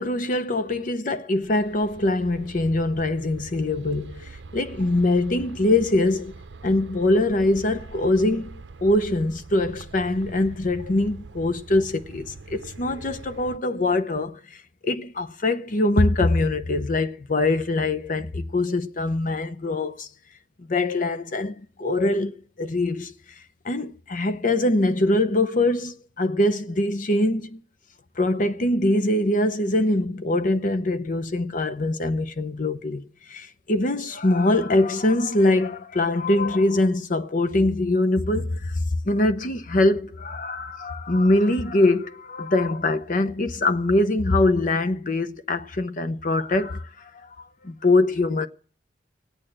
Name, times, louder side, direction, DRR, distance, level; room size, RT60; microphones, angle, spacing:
voice 1, 0.0-6.3 6.6-20.1 20.7-23.4 23.6-27.6 28.2-48.5, left 2 dB, 45° left, 0.8 m, -23 dB
sound 1, 1.4-13.6, right 3 dB, 75° right, 0.7 m, -43 dB
17.5 x 8.8 x 8.8 m
head